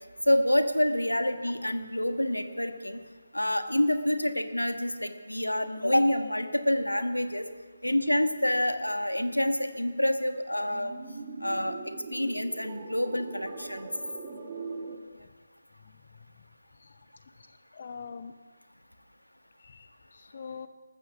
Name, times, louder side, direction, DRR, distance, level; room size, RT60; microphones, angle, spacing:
voice 1, 0.3-3.0 3.3-7.5 7.8-10.9 11.4-11.8 12.1-13.9, left 1 dB, 90° left, 8 dB, 1.5 m, -27 dB
sound 1, 10.6-15.0, right 4 dB, 30° right, 2.1 m, -41 dB
voice 2, 17.4-18.3 19.6-20.7, left 6 dB, 40° left, 11 dB, 0.7 m, -44 dB
14.0 x 13.5 x 7.1 m, 1.4 s
figure-of-eight pair, 150°, 0 cm